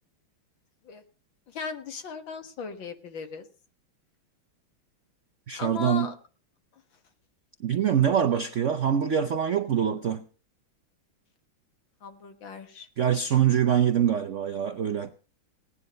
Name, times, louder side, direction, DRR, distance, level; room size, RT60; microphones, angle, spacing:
voice 1, 1.5-3.4 5.5-6.1 12.0-12.9, left 6 dB, 70° left, 2.3 m, -37 dB
voice 2, 5.5-6.1 7.6-10.2 13.0-15.1, right 9 dB, 65° right, 0.7 m, -24 dB
17.5 x 10.0 x 5.3 m
omnidirectional pair, 2.3 m